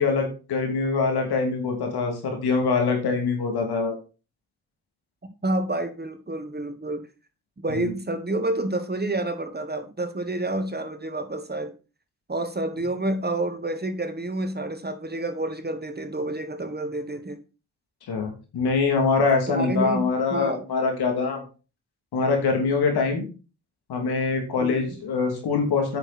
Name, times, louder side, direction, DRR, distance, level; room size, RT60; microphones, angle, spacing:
voice 1, 0.0-3.9 7.7-7.9 18.1-21.4 22.1-23.3 23.9-26.0, left 4 dB, 70° left, 2.9 m, -24 dB
voice 2, 5.4-7.1 7.6-11.7 12.3-17.4 19.5-20.6 23.2-23.3 24.6-24.9, right 2 dB, 25° right, 1.6 m, -29 dB
8.8 x 6.4 x 4.3 m
supercardioid pair, 50°, 39 cm